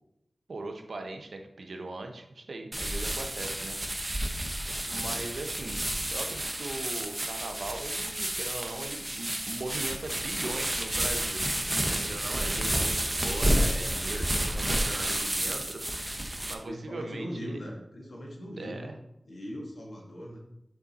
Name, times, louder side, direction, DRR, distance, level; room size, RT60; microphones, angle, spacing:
voice 1, 0.5-4.3 4.9-5.8 6.1-11.7 12.0-15.8 16.5-17.6 18.6-19.0, right 2 dB, 80° right, 4 dB, 0.8 m, -39 dB
sound 1, 2.7-16.5, right 1 dB, 20° right, 0.7 m, -30 dB
voice 2, 13.7-14.0 16.6-18.9 19.2-20.4, equal, 80° left, -2 dB, 1.7 m, -40 dB
7.3 x 3.9 x 4.1 m, 0.83 s
wide cardioid pair, 75°, 0 cm